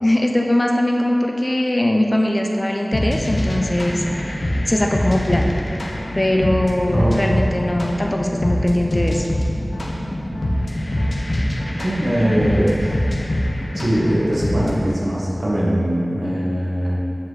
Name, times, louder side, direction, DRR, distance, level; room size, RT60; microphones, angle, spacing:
voice 1, 0.0-4.0 4.6-5.5 6.2-9.2, left 1 dB, 30° left, 2 dB, 0.5 m, -20 dB
sound 1, 2.9-14.9, left 1 dB, 60° left, 0.9 m, -24 dB
voice 2, 6.9-7.2 11.8-12.9 13.7-17.0, equal, 60° right, -7 dB, 1.7 m, -21 dB
7.6 x 5.2 x 4.1 m, 2.6 s
wide cardioid pair, 60°, 0 cm